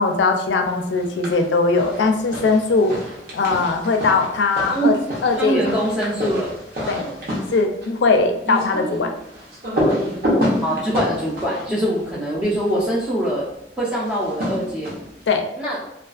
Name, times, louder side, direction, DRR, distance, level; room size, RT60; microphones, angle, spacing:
voice 1, 0.0-2.9 3.3-5.0 5.2-5.6 6.9-7.0 7.5-9.1 15.3-15.4, left 4 dB, 80° left, 5 dB, 0.4 m, -19 dB
sound 1, 0.9-1.5 1.8-12.8 14.0-15.2, equal, 55° right, 0.7 m, -28 dB
voice 2, 5.4-6.5 6.8-7.2 10.6-13.4 13.8-15.0 15.6-15.8, right 1 dB, 10° right, -9 dB, 0.4 m, -23 dB
2.4 x 2.3 x 2.4 m, 0.85 s
head